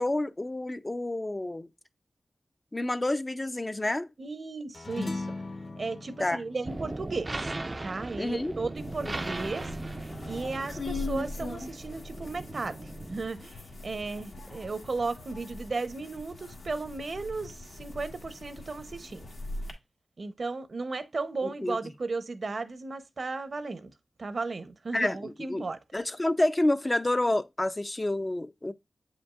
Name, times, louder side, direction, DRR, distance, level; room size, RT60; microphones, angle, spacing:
voice 1, 0.0-1.7 2.7-4.1 6.2-6.4 8.2-8.5 21.6-21.8 24.9-25.7 25.9-28.7, left 1 dB, 25° left, 0.4 m, -28 dB
voice 2, 4.2-5.3 5.8-7.5 7.8-9.7 10.2-19.2 20.2-23.9 24.2-25.8, right 3 dB, 60° right, 0.7 m, -35 dB
sound 1, 4.7-9.4, left 2 dB, 55° left, 1.2 m, -40 dB
sound 2, 6.6-13.3, right 2 dB, 30° right, 0.4 m, -38 dB
sound 3, 8.8-19.7, left 2 dB, 75° left, 1.4 m, -41 dB
7.8 x 5.2 x 2.4 m
wide cardioid pair, 70°, 0 cm